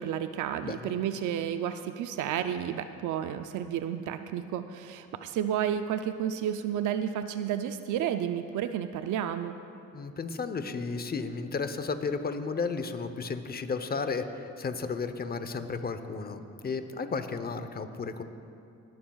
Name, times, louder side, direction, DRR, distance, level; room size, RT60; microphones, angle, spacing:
voice 1, 0.0-9.6, right 9 dB, 80° right, 9 dB, 0.5 m, -31 dB
voice 2, 0.6-0.9 9.9-18.2, left 4 dB, 30° left, 9 dB, 0.8 m, -33 dB
19.5 x 11.5 x 2.4 m, 2.6 s
cardioid pair, 90°, 30 cm